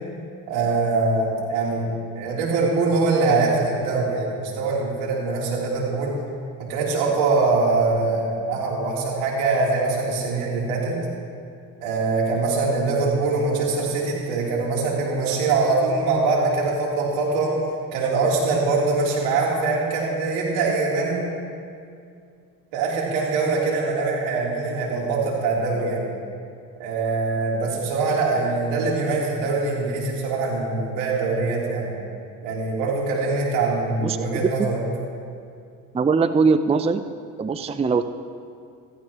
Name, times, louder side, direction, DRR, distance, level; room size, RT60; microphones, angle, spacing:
voice 1, 0.5-1.9 2.1-6.1 6.6-11.0 11.8-17.5 17.9-21.3 22.7-26.0 26.8-31.9 32.4-34.8, right 3 dB, 80° right, -4 dB, 3.6 m, -23 dB
voice 2, 34.0-34.7 35.9-37.0 37.4-38.0, right 4 dB, 15° right, 11 dB, 0.5 m, -21 dB
16.5 x 14.5 x 3.1 m, 2.3 s
hypercardioid pair, 60°, 41 cm